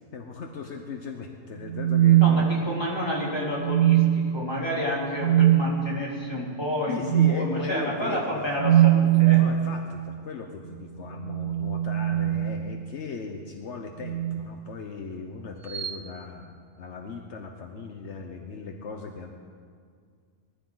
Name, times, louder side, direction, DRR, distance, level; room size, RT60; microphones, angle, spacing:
voice 1, 0.1-2.5 6.9-8.5 9.4-19.3, left 4 dB, 75° left, 3 dB, 1.2 m, -38 dB
sound 1, 1.6-3.0 3.6-4.4 5.2-5.6 7.1-7.4 8.6-9.6 11.1-12.9 14.0-14.5 15.7-16.0, right 12 dB, 85° right, 1.1 m, -21 dB
voice 2, 2.2-9.4, left 1 dB, 20° left, -5 dB, 3.6 m, -30 dB
21.0 x 14.0 x 4.0 m, 2.1 s
omnidirectional pair, 1.2 m